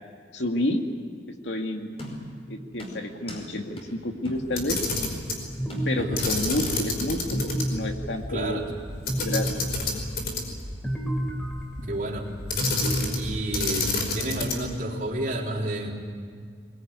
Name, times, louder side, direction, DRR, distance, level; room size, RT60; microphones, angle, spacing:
voice 1, 0.3-0.8 1.4-1.9 2.5-4.8 5.8-8.6 9.2-9.5, left 1 dB, 85° left, 4 dB, 2.3 m, -29 dB
sound 1, 2.0-2.4 2.8-3.5 3.8-3.9 4.2-4.5 4.9-5.3 5.7-6.4 6.7-6.8, left 1 dB, 35° left, 5.1 m, -39 dB
Camera, 4.5-5.4 6.2-7.6 8.0-8.1 9.1-10.7 12.5-13.3 13.5-14.7, left 3 dB, 60° left, 5.0 m, -28 dB
sound 2, 5.6-13.9, equal, 5° left, 3.7 m, -32 dB
voice 2, 8.3-8.7 11.8-12.3 13.1-15.9, right 1 dB, 50° right, -1 dB, 3.8 m, -31 dB
22.0 x 22.0 x 9.6 m, 2.1 s
head